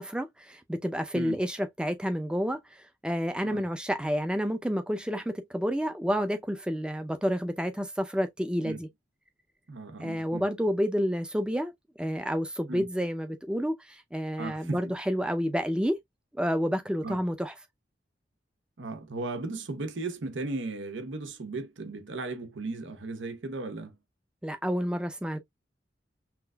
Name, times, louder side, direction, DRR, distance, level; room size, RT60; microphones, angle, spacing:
voice 1, 0.0-2.6 3.0-8.9 10.0-11.7 12.0-16.0 16.3-17.5 24.4-25.4, equal, 5° right, 0.4 m, -29 dB
voice 2, 9.7-10.4 12.7-12.9 14.4-14.9 17.0-17.2 18.8-24.0, right 3 dB, 90° right, 0.8 m, -36 dB
5.8 x 2.4 x 2.2 m
head